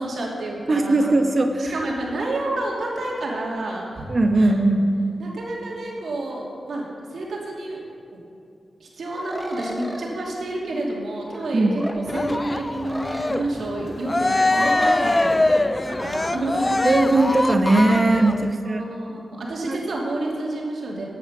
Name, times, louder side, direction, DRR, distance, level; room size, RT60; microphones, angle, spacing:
voice 1, 0.0-1.1 1.6-4.0 4.3-4.6 5.2-6.8 7.1-7.8 8.1-8.2 8.8-16.7 18.6-21.1, right 1 dB, 70° right, -3 dB, 2.7 m, -29 dB
voice 2, 0.7-1.7 4.1-4.9 11.5-11.8 16.8-18.8 19.6-19.8, right 2 dB, 40° right, 5 dB, 1.0 m, -19 dB
sound 1, 9.1-10.1 11.3-12.0 12.9-13.7 14.7-15.5 16.5-16.8, equal, 5° right, 0.8 m, -35 dB
Cheering, 12.1-18.5, left 2 dB, 20° left, 0.3 m, -23 dB
14.5 x 8.9 x 5.8 m, 2.5 s
wide cardioid pair, 145°, 0 cm